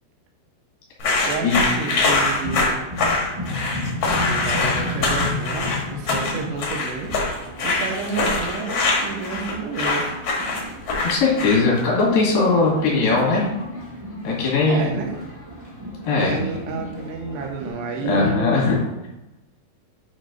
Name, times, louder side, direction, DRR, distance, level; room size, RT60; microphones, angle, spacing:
sound 1, 1.0-11.8, left 3 dB, 55° left, 1.7 m, -23 dB
voice 1, 1.2-2.8 4.1-7.1 7.6-10.1 11.9-12.1 14.7-15.2 16.2-18.6, right 4 dB, 85° right, 1 dB, 3.3 m, -30 dB
sound 2, 2.1-17.7, left 1 dB, 55° right, 0.4 m, -33 dB
voice 2, 11.0-13.5 14.2-14.9 16.0-16.4 18.0-18.8, left 3 dB, 75° left, -3 dB, 4.2 m, -19 dB
9.1 x 3.3 x 5.1 m, 0.97 s
omnidirectional pair, 4.8 m